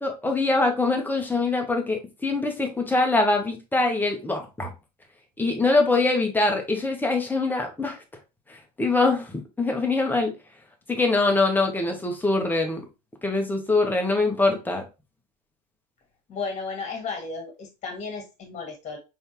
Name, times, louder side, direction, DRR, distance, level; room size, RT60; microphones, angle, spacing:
voice 1, 0.0-4.7 5.4-8.0 8.5-10.3 10.9-12.8 13.2-14.8, left 3 dB, 10° left, 1.3 m, -23 dB
voice 2, 16.3-19.0, left 4 dB, 35° left, 1.9 m, -34 dB
4.3 x 3.5 x 2.9 m
hypercardioid pair, 95°, 21 cm